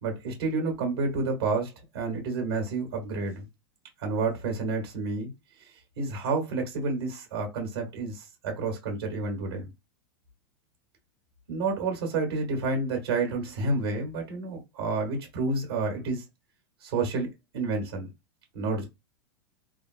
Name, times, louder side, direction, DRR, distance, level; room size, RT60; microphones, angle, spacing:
voice 1, 0.0-3.5 4.0-5.3 5.6-9.7 11.5-16.2 16.8-17.3 17.5-18.1 18.5-18.9, right 3 dB, 80° right, 1.4 m, -30 dB
3.4 x 2.0 x 2.7 m
hypercardioid pair, 115°, 13 cm